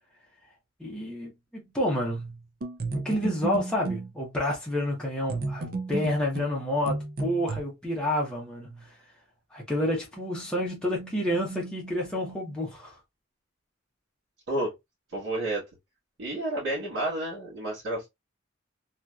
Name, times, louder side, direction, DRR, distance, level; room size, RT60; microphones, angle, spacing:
voice 1, 0.8-2.4 2.9-8.9 9.5-13.0, left 1 dB, 5° left, 0.8 m, -29 dB
sound 1, 2.6-4.1 5.3-7.6, right 3 dB, 45° right, 0.4 m, -32 dB
voice 2, 15.1-15.6 16.2-18.1, right 1 dB, 70° right, 1.4 m, -30 dB
2.8 x 2.4 x 2.3 m
head